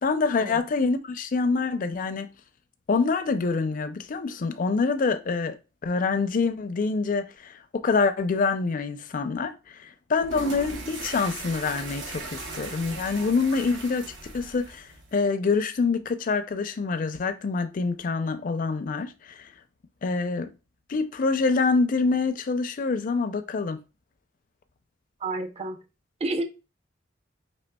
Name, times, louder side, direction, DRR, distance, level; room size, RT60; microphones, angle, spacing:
voice 1, 0.0-2.3 2.9-5.6 5.8-19.5 20.0-20.5 20.9-23.8, left 4 dB, 45° left, 0.4 m, -26 dB
sound 1, 10.2-15.2, right 3 dB, 80° right, 1.0 m, -38 dB
voice 2, 25.2-25.8 26.2-26.4, right 2 dB, 35° right, 0.6 m, -30 dB
5.1 x 3.1 x 2.2 m
head